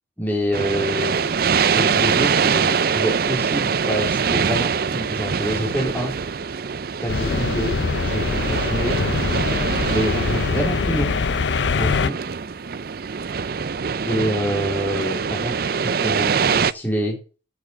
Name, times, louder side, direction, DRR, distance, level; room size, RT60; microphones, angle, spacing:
voice 1, 0.2-1.3 1.7-6.1 7.0-7.7 8.0-9.0 9.9-11.1 11.8-12.2 14.0-17.2, equal, 10° left, -1 dB, 3.7 m, -26 dB
sound 1, 0.5-16.7, right 6 dB, 50° right, 0.5 m, -23 dB
sound 2, 7.1-12.1, left 4 dB, 65° left, 0.5 m, -23 dB
8.8 x 8.0 x 7.1 m, 0.35 s
head